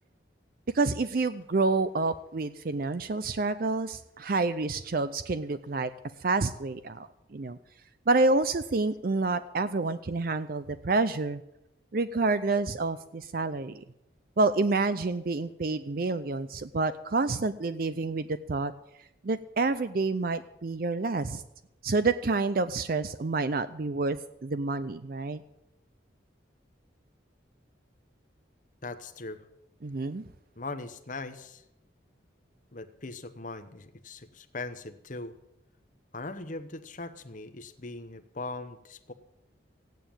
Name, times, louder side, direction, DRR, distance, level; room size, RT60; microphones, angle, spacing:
voice 1, 0.7-5.9 6.2-7.6 8.1-11.4 11.9-13.8 14.4-18.7 19.2-21.4 21.8-24.2 24.4-25.4 29.8-30.2, right 3 dB, 50° right, 13 dB, 0.5 m, -28 dB
voice 2, 28.8-29.4 30.6-31.6 32.7-35.3 36.1-39.1, left 3 dB, 40° left, 9 dB, 0.9 m, -40 dB
15.5 x 9.3 x 8.9 m, 0.85 s
head